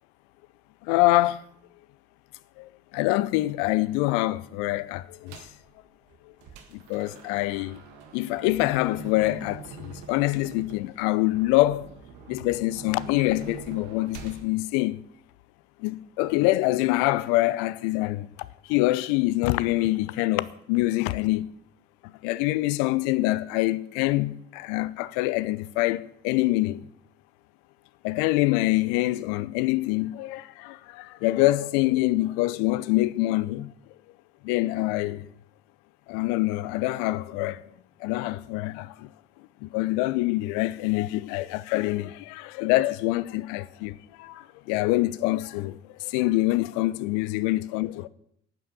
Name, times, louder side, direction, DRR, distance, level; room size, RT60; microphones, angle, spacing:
voice 1, 0.8-1.4 2.6-5.4 6.7-7.8 8.1-11.9 12.3-15.0 15.8-18.3 18.6-21.5 22.2-26.9 28.0-33.7 34.4-35.3 36.1-37.6 38.0-39.1 39.6-48.1, left 18 dB, 65° left, 0.7 m, -25 dB
sound 1, 5.3-5.6 6.1-14.5, right 5 dB, 65° right, 1.8 m, -44 dB
11.5 x 9.0 x 7.1 m
figure-of-eight pair, 50°, 34 cm